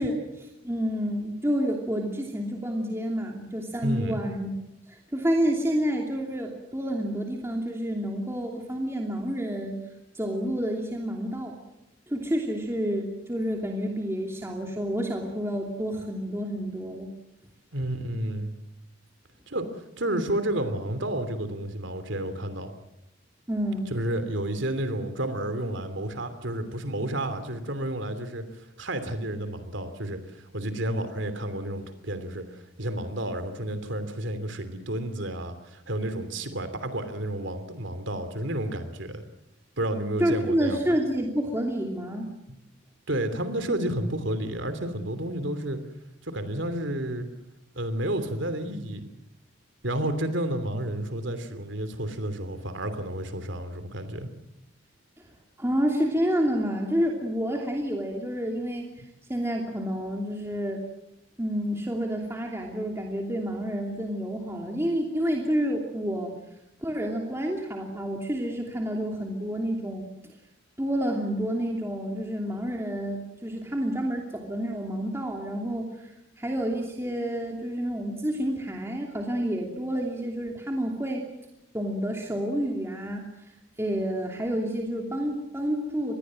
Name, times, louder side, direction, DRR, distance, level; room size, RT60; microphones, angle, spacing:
voice 1, 0.0-4.5 4.9-9.8 10.1-11.6 12.1-17.1 23.5-23.8 40.2-42.3 55.6-58.9 59.3-60.8 61.4-66.3 66.8-70.1 70.8-81.2 81.7-83.3 83.8-86.2, equal, 15° right, 1 dB, 2.8 m, -29 dB
voice 2, 3.8-4.2 17.7-18.6 19.5-22.7 23.9-39.2 39.8-40.8 42.5-42.6 43.1-45.8 46.2-47.3 47.7-49.1 49.8-54.3, right 1 dB, 65° right, 10 dB, 3.0 m, -31 dB
27.0 x 20.5 x 7.6 m, 0.88 s
head